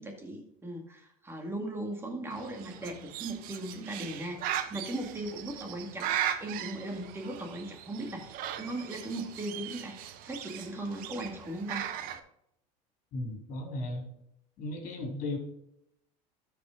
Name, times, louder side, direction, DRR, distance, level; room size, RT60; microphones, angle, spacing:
voice 1, 0.0-11.9, right 1 dB, 15° right, 2 dB, 2.1 m, -38 dB
Bird, 2.3-12.2, right 10 dB, 55° right, 0.9 m, -38 dB
voice 2, 13.1-14.1 14.6-15.4, left 2 dB, 50° left, 0 dB, 3.9 m, -35 dB
12.5 x 5.3 x 3.9 m, 0.77 s
supercardioid pair, 120°, 17 cm